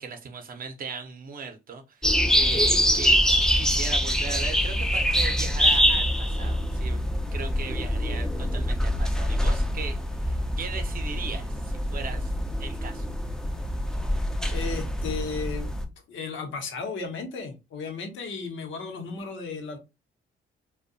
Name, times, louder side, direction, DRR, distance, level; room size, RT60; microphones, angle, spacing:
voice 1, 0.0-7.0 7.3-12.3 12.6-13.1, right 5 dB, 45° right, 7 dB, 0.6 m, -38 dB
sound 1, 2.0-15.9, equal, 5° left, 0.4 m, -25 dB
voice 2, 14.5-15.7 16.1-19.8, left 4 dB, 75° left, 5 dB, 0.8 m, -34 dB
2.6 x 2.2 x 2.5 m, 0.25 s
cardioid pair, 90°, 20 cm